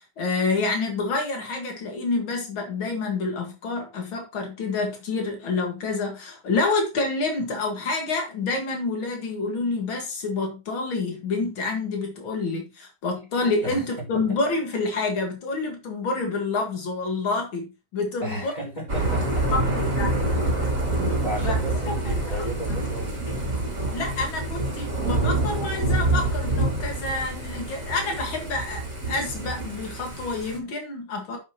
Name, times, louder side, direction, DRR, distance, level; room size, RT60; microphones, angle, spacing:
voice 1, 0.2-18.5 19.5-20.2 21.4-21.5 22.2-22.4 23.3-23.5 23.9-31.4, left 3 dB, 85° left, 2.6 m, -28 dB
voice 2, 18.2-19.7 20.3-20.4 21.2-23.3, right 1 dB, 20° left, 4.7 m, -34 dB
Thunder / Rain, 18.9-30.6, right 2 dB, 40° right, 3.1 m, -26 dB
9.9 x 7.9 x 3.0 m
omnidirectional pair, 2.2 m